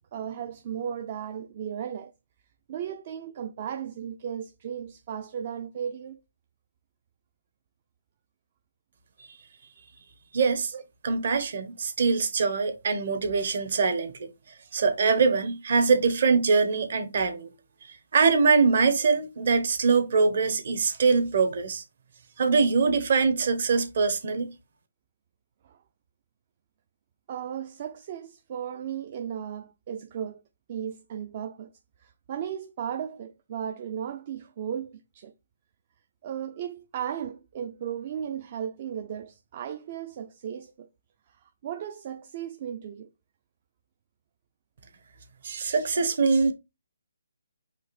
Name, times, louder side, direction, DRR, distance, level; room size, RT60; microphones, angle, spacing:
voice 1, 0.1-2.1 2.7-6.2 10.7-10.8 25.6-25.8 27.3-30.4 30.7-31.7 32.0-35.3 36.2-40.9 41.3-43.1 46.1-46.2, right 9 dB, 35° right, 0.4 m, -35 dB
voice 2, 10.3-10.7 11.0-14.3 14.7-17.5 18.1-21.8 22.4-24.5 45.4-46.5, right 4 dB, 55° right, 1.1 m, -23 dB
4.9 x 2.6 x 4.1 m
hypercardioid pair, 160°, 0 cm